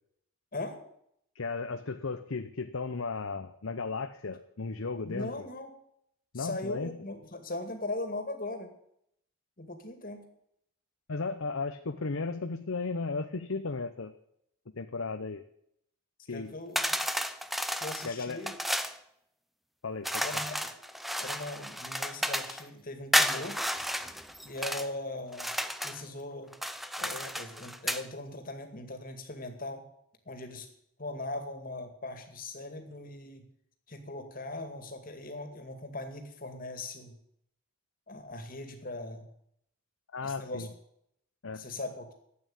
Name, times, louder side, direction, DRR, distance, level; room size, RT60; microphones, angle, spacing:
voice 1, 1.3-5.3 6.3-6.9 11.1-14.1 14.8-15.4 16.3-16.5 18.0-18.4 19.8-20.2 40.1-40.7 41.4-41.6, left 4 dB, 75° left, 7 dB, 0.8 m, -35 dB
voice 2, 5.0-5.7 6.3-8.7 9.6-10.2 16.3-16.8 17.8-18.6 20.2-20.7 21.2-23.6 24.4-25.5 25.8-26.5 27.0-29.8 30.3-30.7 31.0-33.4 33.9-37.2 38.1-39.3 40.2-40.7 41.6-42.1, left 2 dB, 40° left, 7 dB, 2.3 m, -39 dB
sound 1, 16.8-19.0 20.0-22.6 23.1-24.9 25.3-26.0 26.5-28.1, equal, ahead, 0.6 m, -32 dB
13.0 x 8.8 x 8.7 m, 0.73 s
head